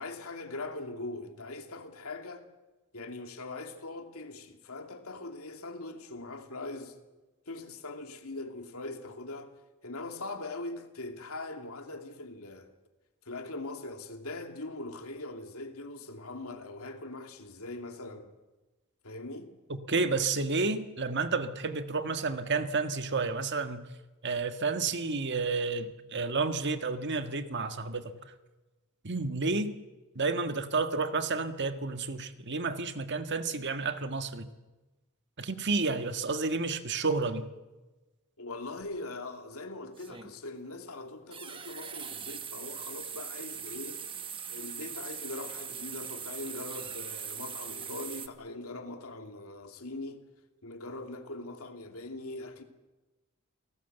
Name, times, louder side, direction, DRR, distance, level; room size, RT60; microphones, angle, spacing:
voice 1, 0.0-2.5 2.9-7.0 7.5-9.5 9.8-12.7 13.2-18.3 19.0-19.5 38.4-44.0 44.5-50.2 50.6-52.6, left 2 dB, 70° left, 2.7 m, -41 dB
voice 2, 19.7-23.8 24.2-28.1 29.0-29.7 30.1-34.5 35.4-37.5, right 4 dB, 50° right, 1.6 m, -31 dB
sound 1, 38.8-38.9 40.0-40.4 41.3-48.3, right 7 dB, 25° right, 1.3 m, -41 dB
29.0 x 19.0 x 8.1 m
head